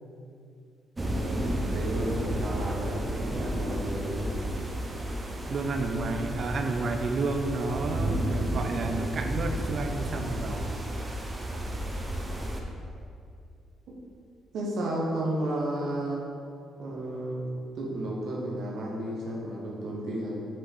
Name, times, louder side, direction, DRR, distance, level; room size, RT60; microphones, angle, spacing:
sound 1, 1.0-12.6, right 1 dB, 20° right, 0.8 m, -32 dB
voice 1, 1.2-4.4 14.5-16.2 16.8-17.5 17.7-20.5, right 1 dB, 70° right, -4 dB, 1.0 m, -33 dB
voice 2, 5.5-10.8, right 3 dB, 55° right, 5 dB, 0.6 m, -31 dB
5.7 x 5.3 x 4.2 m, 2.5 s
cardioid pair, 90°, 0 cm